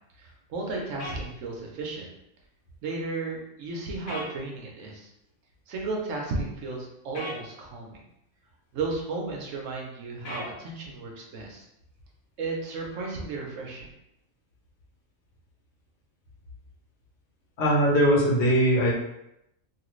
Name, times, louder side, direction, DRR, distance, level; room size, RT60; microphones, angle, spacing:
voice 1, 0.2-2.1 2.8-5.1 5.7-8.0 8.7-11.6 12.4-13.9, right 3 dB, 70° right, 0 dB, 1.0 m, -34 dB
sound 1, 1.0-1.2 4.1-4.3 7.1-7.4 10.2-10.5, equal, 80° left, 1.2 m, -35 dB
voice 2, 17.6-18.9, equal, 55° left, -4 dB, 1.1 m, -20 dB
3.0 x 2.4 x 3.0 m, 0.83 s
omnidirectional pair, 1.4 m